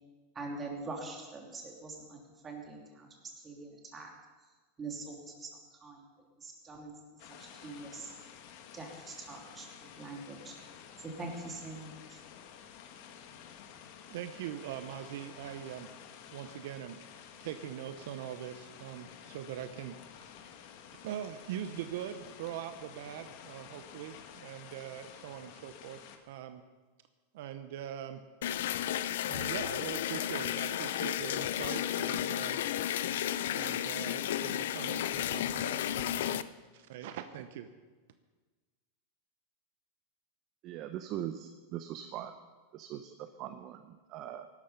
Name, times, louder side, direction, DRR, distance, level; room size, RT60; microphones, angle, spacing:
voice 1, 0.3-2.2 2.4-3.1 3.4-4.1 4.8-5.5 5.8-6.1 6.4-6.9 7.4-8.1 8.7-9.7 10.0-10.5 11.0-12.2, right 3 dB, 20° right, 1 dB, 3.0 m, -43 dB
sound 1, 7.2-26.2, left 8 dB, 55° left, 1.5 m, -52 dB
voice 2, 14.1-15.9 16.3-17.0 17.4-20.0 21.0-26.0 26.3-26.6 27.3-28.2 29.3-32.6 33.5-36.4 36.7-37.7, right 10 dB, 70° right, 10 dB, 0.8 m, -42 dB
sound 2, 28.4-36.4, left 11 dB, 80° left, 0.5 m, -33 dB
voice 3, 40.6-42.3 42.7-44.5, right 11 dB, 40° right, 9 dB, 0.7 m, -41 dB
16.5 x 12.5 x 5.7 m, 1.3 s
supercardioid pair, 145°, 0 cm